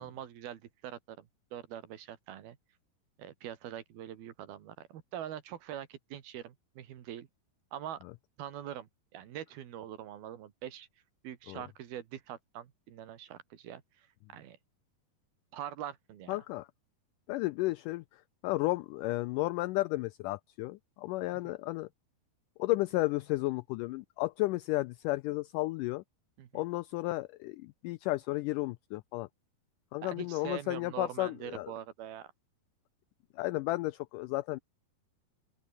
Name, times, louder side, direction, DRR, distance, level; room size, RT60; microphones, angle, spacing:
voice 1, 0.0-2.6 3.2-7.3 7.7-8.0 8.4-10.9 11.2-14.1 14.3-14.6 15.5-16.4 21.5-21.6 26.4-26.6 30.0-32.3, right 11 dB, 85° right, 3.8 m, -43 dB
voice 2, 16.3-16.7 17.3-21.9 22.6-26.0 26.5-29.3 29.9-31.7 33.4-34.6, left 19 dB, 85° left, 1.8 m, -33 dB
open air
omnidirectional pair, 4.3 m